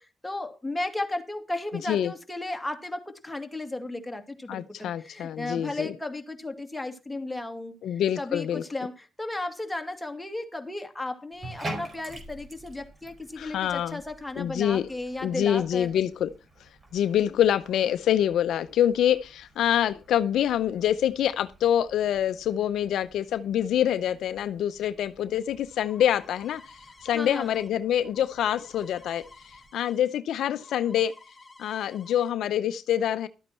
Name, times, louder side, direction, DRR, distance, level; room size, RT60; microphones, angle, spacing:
voice 1, 0.0-15.9 27.1-27.6, left 2 dB, 10° left, 2.3 m, -35 dB
voice 2, 4.5-5.9 7.8-8.6 13.4-14.0 14.4-14.9 15.2-16.3 16.6-31.1 31.6-33.3, left 10 dB, 80° left, 0.6 m, -26 dB
Bathtub (filling or washing), 11.3-29.7, right 1 dB, 35° right, 4.6 m, -47 dB
sound 1, 25.2-30.0 30.3-32.3, left 3 dB, 25° left, 3.7 m, -53 dB
12.5 x 8.9 x 4.4 m
supercardioid pair, 65°, 0 cm